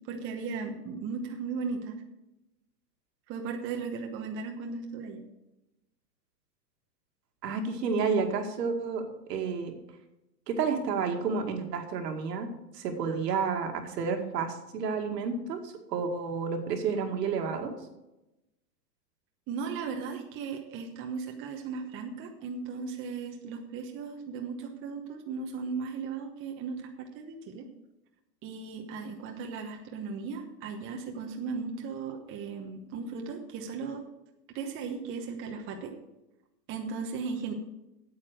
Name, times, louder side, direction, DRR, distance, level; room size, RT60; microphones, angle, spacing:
voice 1, 0.0-2.0 3.3-5.2 19.5-27.6 28.4-34.0 34.5-35.9 36.7-37.5, right 5 dB, 25° right, 3 dB, 1.1 m, -36 dB
voice 2, 7.4-9.8 10.5-12.5 12.7-17.7, right 5 dB, 75° right, 4 dB, 2.3 m, -30 dB
8.8 x 8.5 x 6.5 m, 0.95 s
hypercardioid pair, 145°, 50 cm